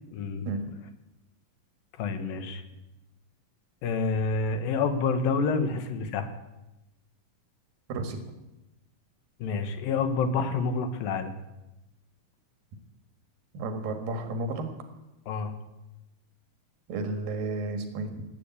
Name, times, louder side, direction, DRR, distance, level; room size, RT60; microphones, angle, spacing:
voice 1, 0.1-0.5 2.0-2.6 3.8-6.3 9.4-11.3 15.3-15.5, left 4 dB, 85° left, 8 dB, 3.1 m, -28 dB
voice 2, 7.9-8.2 13.5-14.7 16.9-18.2, right 3 dB, 85° right, 6 dB, 3.5 m, -32 dB
17.0 x 8.9 x 8.4 m, 0.97 s
omnidirectional pair, 4.0 m